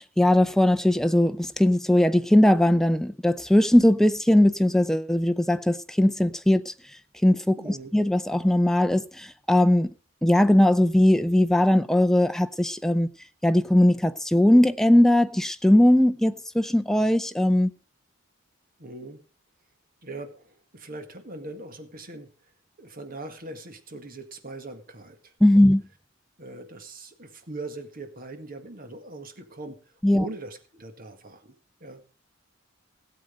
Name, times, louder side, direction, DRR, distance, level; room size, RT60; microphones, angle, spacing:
voice 1, 0.0-6.7 7.2-9.9 10.2-13.1 13.4-17.7 25.4-25.8 30.0-30.2, left 1 dB, ahead, 0.5 m, -20 dB
voice 2, 7.6-7.9 18.8-19.2 20.0-22.5 22.8-25.7 26.4-31.5 31.8-32.0, right 2 dB, 45° right, 1.9 m, -41 dB
17.0 x 8.0 x 5.1 m
head